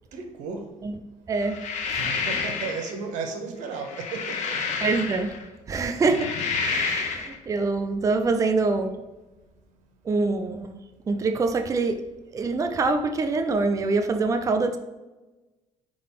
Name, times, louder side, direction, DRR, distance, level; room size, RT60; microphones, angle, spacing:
voice 1, 0.1-0.7 2.0-4.6, right 4 dB, 90° right, 1.1 m, -34 dB
voice 2, 1.3-1.6 1.9-2.1 4.8-5.4 5.7-6.3 6.6-8.9 10.0-10.8 11.1-12.0 12.3-14.8, right 3 dB, 25° right, 0.5 m, -25 dB
sound 1, 1.4-2.9 3.7-5.5 6.0-7.3, left 5 dB, 70° left, 1.0 m, -29 dB
4.6 x 3.9 x 5.6 m
cardioid pair, 120°, 13 cm